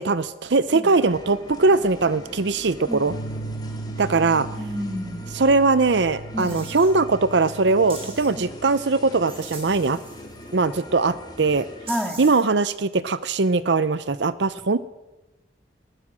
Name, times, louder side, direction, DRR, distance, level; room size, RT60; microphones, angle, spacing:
voice 1, 0.0-3.1 4.0-4.5 5.3-10.0 10.5-11.7 12.2-14.8, right 3 dB, 65° right, 15 dB, 0.7 m, -21 dB
sound 1, 1.0-11.9, left 1 dB, 20° left, 3.0 m, -42 dB
sound 2, 3.1-10.7, right 2 dB, 70° left, 2.3 m, -38 dB
voice 2, 4.5-5.3 6.3-6.6 8.3-8.5 11.9-12.2, equal, ahead, 3 dB, 2.5 m, -30 dB
sound 3, 6.4-6.9 7.9-8.3 9.3-10.5 11.9-12.5, right 3 dB, 30° right, 6.4 m, -40 dB
21.0 x 20.0 x 6.2 m, 1.0 s
head